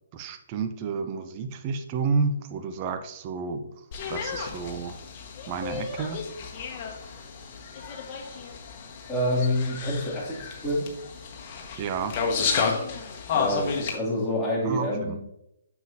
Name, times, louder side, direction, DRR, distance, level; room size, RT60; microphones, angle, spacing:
voice 1, 0.1-5.0 5.5-6.2 11.8-12.2 14.6-15.2, right 5 dB, 30° right, 8 dB, 0.8 m, -31 dB
sound 1, 3.9-14.0, left 5 dB, 35° left, 1.5 m, -32 dB
voice 2, 9.1-10.9 13.3-15.2, left 1 dB, 5° left, -8 dB, 2.9 m, -27 dB
9.2 x 7.1 x 2.8 m, 0.84 s
figure-of-eight pair, 140°, 0 cm